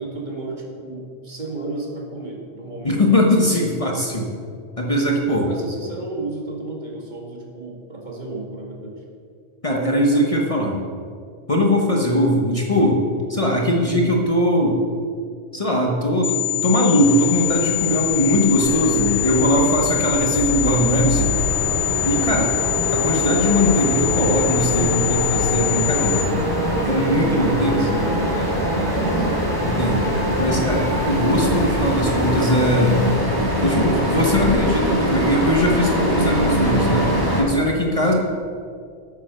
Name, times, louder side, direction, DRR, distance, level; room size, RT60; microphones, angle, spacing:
voice 1, 0.0-3.0 5.3-9.0 26.9-27.1 27.4-29.4, right 2 dB, 40° right, -2 dB, 1.8 m, -33 dB
voice 2, 2.8-4.3 4.8-5.5 9.6-10.8 11.5-13.0 13.3-14.8 15.5-21.3 22.0-22.5 22.9-26.4 26.8-27.9 29.6-30.0 30.4-33.0 33.6-37.1 37.4-38.1, equal, 30° left, 0 dB, 1.0 m, -20 dB
sound 1, 16.2-26.2, left 18 dB, 55° left, 1.3 m, -24 dB
sound 2, 17.0-33.2, left 1 dB, 5° left, 1.0 m, -37 dB
sound 3, 18.6-37.4, equal, 20° right, 1.9 m, -23 dB
8.9 x 7.4 x 6.2 m, 2.3 s
omnidirectional pair, 1.1 m